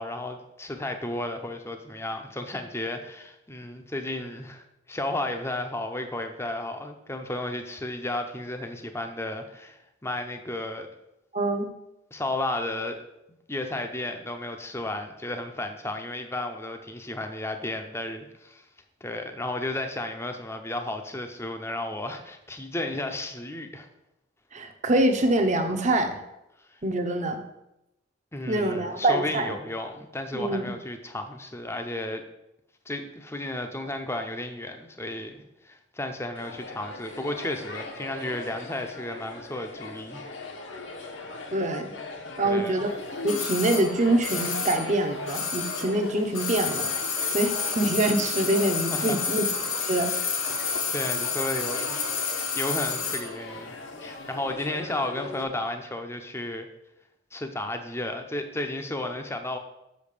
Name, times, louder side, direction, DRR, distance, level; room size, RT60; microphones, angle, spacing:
voice 1, 0.0-10.9 12.1-13.0 13.5-18.6 19.0-23.9 28.3-32.2 32.9-40.2 42.4-42.8 48.9-49.2 50.9-52.0 52.6-53.7 54.0-56.7 57.3-59.6, left 1 dB, 15° left, 5 dB, 0.7 m, -33 dB
voice 2, 11.3-11.7 24.5-26.2 26.8-27.4 28.5-29.5 30.3-30.7 41.5-42.0 42.4-42.9 43.2-46.9 47.3-49.4 49.9-50.1, right 1 dB, 35° right, 6 dB, 0.8 m, -25 dB
sound 1, 36.4-55.4, left 3 dB, 65° left, 1.0 m, -39 dB
sound 2, 43.3-46.0 46.3-53.3 53.6-53.7, left 5 dB, 90° left, 1.3 m, -30 dB
6.4 x 5.3 x 6.7 m, 0.88 s
head